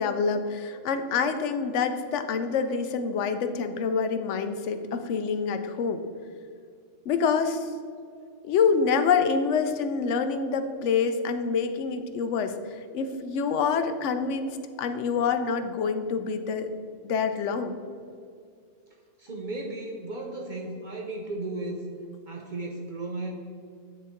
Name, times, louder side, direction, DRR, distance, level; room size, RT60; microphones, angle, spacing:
voice 1, 0.0-6.0 7.1-7.7 8.4-16.7 17.0-17.8, left 5 dB, 75° left, 8 dB, 0.9 m, -26 dB
voice 2, 19.2-21.8 22.3-23.3, right 2 dB, 50° right, 0 dB, 0.7 m, -35 dB
9.6 x 4.1 x 3.6 m, 2.3 s
omnidirectional pair, 1.3 m